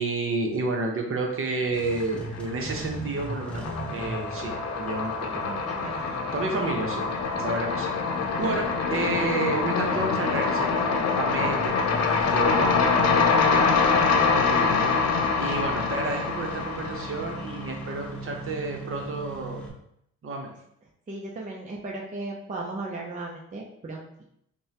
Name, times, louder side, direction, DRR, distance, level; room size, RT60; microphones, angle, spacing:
voice 1, 0.0-3.6 3.9-5.6 5.9-7.1 7.4-7.9 8.4-13.8 14.3-19.6 20.2-20.5, right 3 dB, 45° right, 2 dB, 0.9 m, -31 dB
Engine starting, 1.7-19.7, right 1 dB, 5° left, 0.8 m, -39 dB
sound 1, 1.8-2.5 2.8-18.0, left 5 dB, 60° left, 0.7 m, -25 dB
voice 2, 5.5-6.1 6.4-6.5 8.5-8.6 12.9-14.3 21.1-24.1, right 2 dB, 25° right, -2 dB, 0.6 m, -37 dB
5.3 x 2.2 x 2.8 m, 0.74 s
cardioid pair, 90°, 30 cm